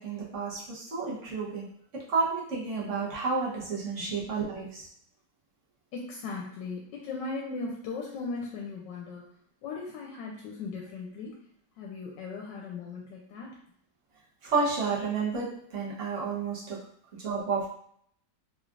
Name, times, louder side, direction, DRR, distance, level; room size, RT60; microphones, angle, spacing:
voice 1, 0.0-1.7 1.9-4.8 14.4-16.8 17.2-17.7, right 4 dB, 50° right, -5 dB, 1.2 m, -31 dB
voice 2, 5.9-9.3 9.6-11.3 11.8-13.5, left 4 dB, 80° left, -1 dB, 1.2 m, -38 dB
3.5 x 3.1 x 2.4 m, 0.65 s
omnidirectional pair, 1.9 m